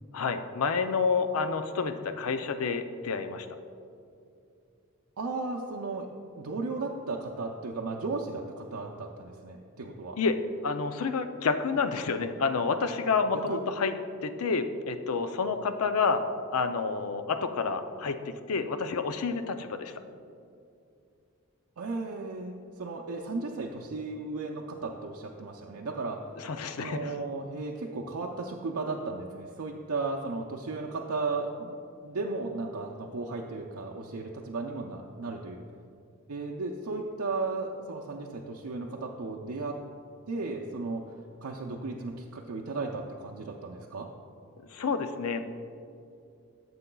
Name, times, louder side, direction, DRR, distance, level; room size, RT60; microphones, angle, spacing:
voice 1, 0.1-3.5 10.2-10.4 10.6-13.9 14.2-16.2 16.5-18.2 18.5-19.9 26.4-27.1 44.7-45.5, left 4 dB, 75° left, 9 dB, 0.5 m, -29 dB
voice 2, 5.2-6.1 6.4-10.2 13.5-13.6 21.8-26.2 26.8-35.6 36.3-39.8 40.3-41.1 41.4-44.1, right 3 dB, 80° right, 0 dB, 0.5 m, -35 dB
13.5 x 6.9 x 2.3 m, 2.5 s
head